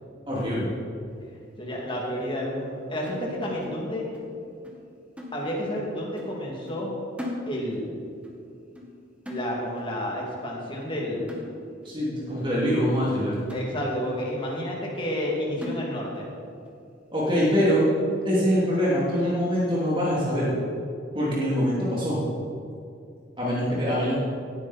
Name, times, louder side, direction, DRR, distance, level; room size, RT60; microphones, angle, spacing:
voice 1, 0.3-0.7 11.8-13.4 17.1-17.8 18.2-20.5 21.1-22.2 23.4-24.2, equal, 25° right, -7 dB, 3.0 m, -24 dB
voice 2, 1.6-4.1 5.3-7.0 7.5-8.0 9.3-11.3 13.5-16.3, equal, 25° left, -3 dB, 2.8 m, -30 dB
sound 1, 3.1-4.4 4.6-4.9 5.2-5.9 6.2-6.4 6.7-7.9 8.2-8.4 8.8-9.9 10.3-10.5 10.8-11.0 11.3-11.9 12.4-12.5 12.9-13.1 13.5-14.2 14.6-14.7 15.1-15.3 15.6-16.3 16.7-16.8 17.2-17.3 17.7-18.2 18.7-18.8 19.2-19.4, left 1 dB, 5° right, 1.7 m, -40 dB
17.0 x 9.8 x 4.4 m, 2.5 s
head